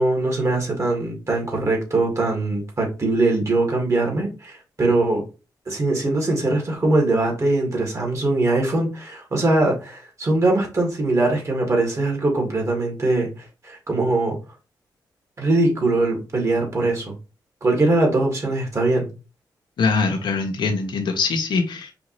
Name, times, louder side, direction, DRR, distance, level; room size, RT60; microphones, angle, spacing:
voice 1, 0.0-5.2 5.7-13.3 13.6-14.4 15.4-17.1 17.6-19.1, right 2 dB, 40° right, 2.0 m, -21 dB
voice 2, 19.8-21.9, left 4 dB, 80° left, 1.0 m, -22 dB
4.9 x 2.7 x 3.1 m
cardioid pair, 80°, 8 cm